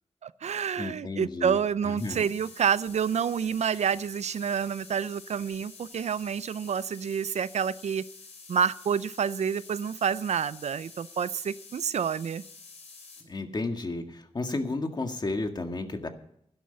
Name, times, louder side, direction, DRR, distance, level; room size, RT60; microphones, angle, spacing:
voice 1, 0.2-8.0 8.5-12.4, right 7 dB, 75° right, 17 dB, 0.5 m, -28 dB
voice 2, 0.8-1.6 1.9-2.2 13.2-16.1, left 2 dB, 40° left, 5 dB, 1.9 m, -32 dB
sound 1, 2.0-13.2, left 4 dB, 70° left, 3.5 m, -49 dB
12.5 x 11.5 x 5.7 m, 0.72 s
wide cardioid pair, 80°, 12 cm